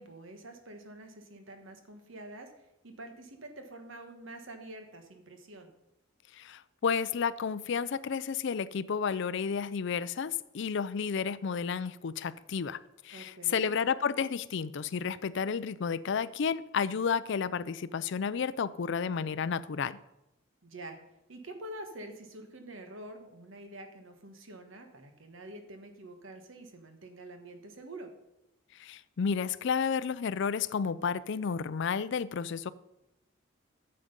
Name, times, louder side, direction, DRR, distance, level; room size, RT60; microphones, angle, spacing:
voice 1, 0.0-5.7 13.1-13.7 20.6-21.0 21.3-28.1, right 1 dB, 65° right, 1.4 m, -47 dB
voice 2, 6.3-12.8 13.0-20.0 28.8-32.7, left 6 dB, 55° left, 0.4 m, -31 dB
9.4 x 7.7 x 5.3 m
head